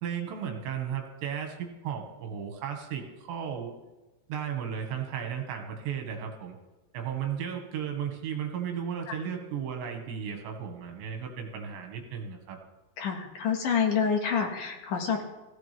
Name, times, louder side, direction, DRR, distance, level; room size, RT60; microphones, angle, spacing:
voice 1, 0.0-3.8 4.3-6.6 6.9-12.6, right 8 dB, 75° right, 3 dB, 3.8 m, -35 dB
voice 2, 13.0-15.2, left 6 dB, 60° left, 2 dB, 2.5 m, -27 dB
17.0 x 15.5 x 3.4 m, 1.1 s
omnidirectional pair, 5.2 m